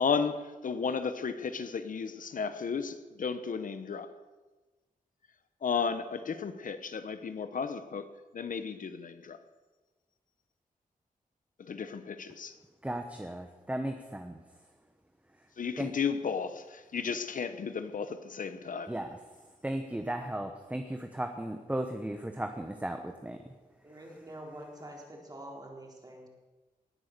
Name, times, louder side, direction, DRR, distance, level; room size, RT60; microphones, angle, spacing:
voice 1, 0.0-4.1 5.6-8.1 8.3-9.4 11.6-12.5 15.6-19.0, left 6 dB, 65° left, 11 dB, 0.9 m, -33 dB
voice 2, 12.8-14.4 15.8-15.9 18.9-19.2 19.6-23.4, right 1 dB, 10° right, 6 dB, 1.0 m, -36 dB
voice 3, 23.8-26.3, right 1 dB, 25° right, -1 dB, 3.9 m, -46 dB
19.0 x 9.6 x 6.7 m, 1.2 s
wide cardioid pair, 105°, 15 cm